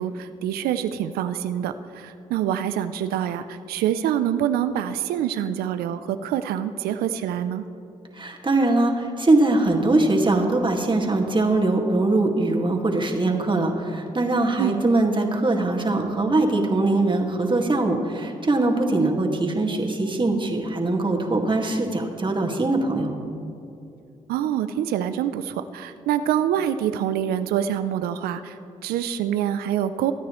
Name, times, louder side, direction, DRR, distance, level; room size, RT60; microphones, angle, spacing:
voice 1, 0.0-7.6 14.6-14.8 19.0-19.1 24.3-30.1, right 10 dB, 85° right, 12 dB, 0.5 m, -26 dB
voice 2, 8.1-23.1, right 2 dB, 30° right, 1 dB, 2.0 m, -22 dB
23.5 x 9.3 x 3.2 m, 2.7 s
supercardioid pair, 45°, 15 cm